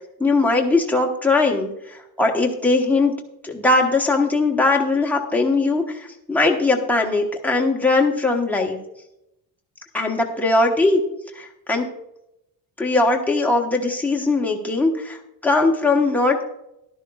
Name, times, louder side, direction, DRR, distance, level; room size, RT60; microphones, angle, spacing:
voice 1, 0.2-3.1 3.4-8.8 9.9-11.0 11.3-11.9 12.8-15.2 15.4-16.4, left 3 dB, 5° left, 0 dB, 1.0 m, -20 dB
13.5 x 12.0 x 2.3 m, 0.84 s
cardioid pair, 170°, 40 cm